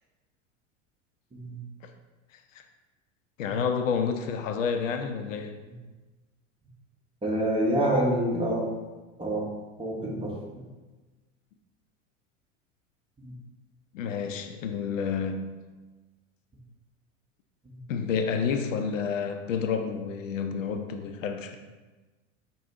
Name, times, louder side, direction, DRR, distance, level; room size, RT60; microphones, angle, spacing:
voice 1, 3.4-5.6 13.9-15.5 17.9-21.6, left 6 dB, 75° left, 6 dB, 0.5 m, -29 dB
voice 2, 7.2-8.7 9.2-9.5 9.8-10.6 13.2-13.3 17.7-17.8, right 1 dB, 15° right, -3 dB, 1.1 m, -27 dB
4.9 x 2.3 x 3.8 m, 1.2 s
hypercardioid pair, 85°, 38 cm